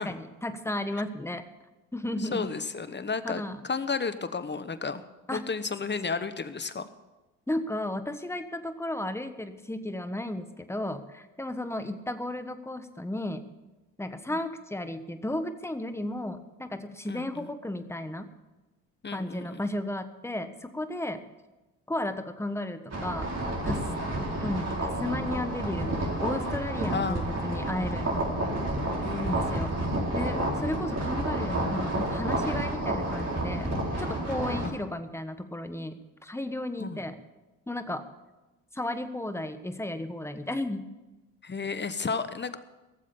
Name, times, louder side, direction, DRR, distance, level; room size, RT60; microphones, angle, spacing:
voice 1, 0.0-1.4 1.9-2.5 3.2-3.6 5.3-5.4 7.5-13.4 14.0-18.3 19.1-21.2 21.9-23.3 23.6-23.8 24.4-28.1 29.2-29.8 30.1-33.7 34.0-37.2 37.7-38.0 38.7-40.9, left 1 dB, 5° left, 9 dB, 1.3 m, -34 dB
voice 2, 2.2-5.0 5.3-6.9 11.8-12.0 14.3-14.4 17.1-17.5 19.0-19.7 26.9-27.3 29.0-29.3 33.7-33.8 34.3-34.4 36.8-37.0 41.4-42.6, left 4 dB, 25° left, 12 dB, 1.1 m, -33 dB
sound 1, 22.9-34.7, right 1 dB, 40° right, 4.4 m, -30 dB
17.5 x 7.4 x 7.0 m, 1.1 s
hypercardioid pair, 60°, 41 cm